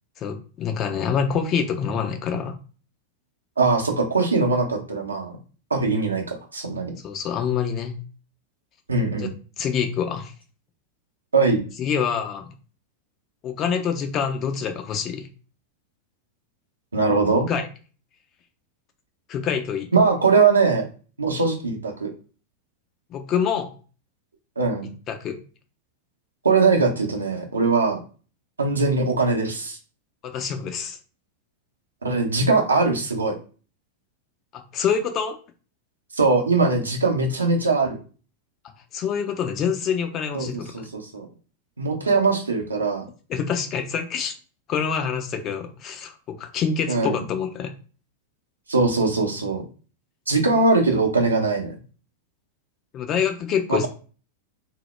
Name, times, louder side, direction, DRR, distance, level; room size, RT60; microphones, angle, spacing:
voice 1, 0.2-2.5 7.0-8.0 9.2-9.3 9.6-10.3 11.8-12.5 13.4-15.3 17.5-17.7 19.3-19.9 23.1-23.7 25.1-25.4 30.2-31.0 34.5-35.4 38.9-40.9 43.3-44.3 44.7-47.7 52.9-53.9, left 7 dB, 35° left, 6 dB, 0.4 m, -26 dB
voice 2, 3.6-5.3 5.7-6.9 8.9-9.3 11.3-11.6 16.9-17.5 19.9-20.9 21.2-22.1 24.6-24.9 26.4-28.0 28.6-29.8 32.0-33.3 36.2-38.0 40.3-40.5 40.7-41.3 41.8-43.0 46.9-47.2 48.7-49.6 50.3-51.8 53.7-53.9, right 3 dB, 75° right, 3 dB, 0.6 m, -21 dB
2.1 x 2.0 x 3.1 m, 0.37 s
figure-of-eight pair, 90°, 0 cm